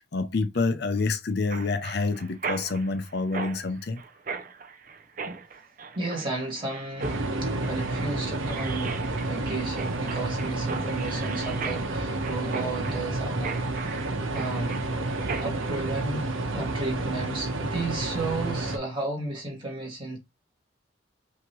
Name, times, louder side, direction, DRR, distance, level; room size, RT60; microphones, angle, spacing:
voice 1, 0.0-4.0, left 3 dB, 55° left, 0.6 m, -27 dB
Mechanisms, 1.5-15.7, right 5 dB, 40° right, 0.6 m, -38 dB
voice 2, 5.9-13.7 14.3-14.8 15.4-20.2, right 2 dB, 25° right, 2.2 m, -33 dB
sound 1, 7.0-18.8, right 2 dB, 85° right, 1.1 m, -30 dB
5.9 x 2.9 x 3.1 m
head